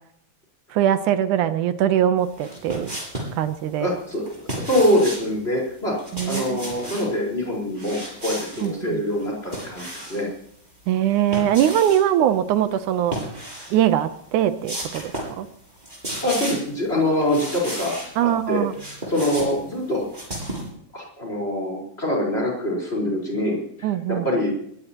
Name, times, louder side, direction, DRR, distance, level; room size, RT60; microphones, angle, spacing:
voice 1, 0.7-2.9 3.4-3.9 6.1-6.6 8.6-9.0 10.9-13.2 13.7-15.5 18.2-18.7 23.8-24.3, right 10 dB, 75° right, 11 dB, 2.2 m, -22 dB
sound 1, 2.3-3.4 4.2-5.3 5.9-7.1 7.7-8.7 9.1-10.3 11.1-12.0 13.0-13.8 14.2-14.3 14.6-15.4 15.7-16.7 17.2-18.1 18.5-20.7, right 1 dB, 15° right, 6.7 m, -33 dB
voice 2, 3.8-5.9 6.2-10.3 16.2-17.9 18.2-20.0 20.9-24.5, left 1 dB, 20° left, -1 dB, 4.7 m, -24 dB
22.0 x 17.0 x 3.0 m, 0.70 s
omnidirectional pair, 3.7 m